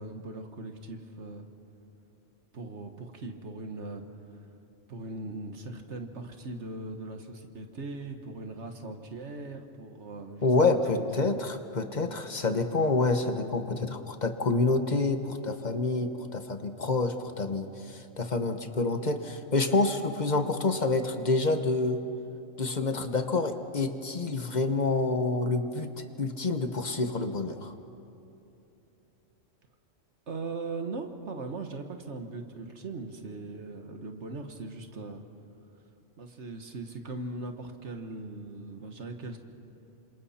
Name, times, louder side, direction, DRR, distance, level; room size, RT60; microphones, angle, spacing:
voice 1, 0.0-1.5 2.5-4.0 4.9-11.4 30.3-35.2 36.2-39.4, right 3 dB, 65° right, 5 dB, 1.7 m, -39 dB
voice 2, 10.4-22.0 22.6-25.9 26.2-27.7, left 3 dB, 40° left, 7 dB, 1.1 m, -28 dB
28.0 x 26.0 x 4.3 m, 2.9 s
omnidirectional pair, 1.3 m